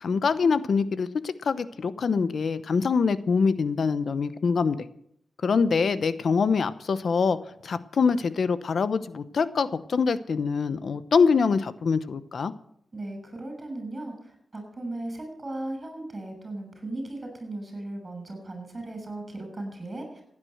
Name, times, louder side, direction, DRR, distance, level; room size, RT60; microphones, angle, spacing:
voice 1, 0.0-4.8 5.4-7.4 7.6-12.5, left 5 dB, 65° left, 14 dB, 0.8 m, -24 dB
voice 2, 12.9-20.2, right 2 dB, 30° right, 5 dB, 6.5 m, -37 dB
16.0 x 9.7 x 7.9 m, 0.70 s
wide cardioid pair, 95°, 0 cm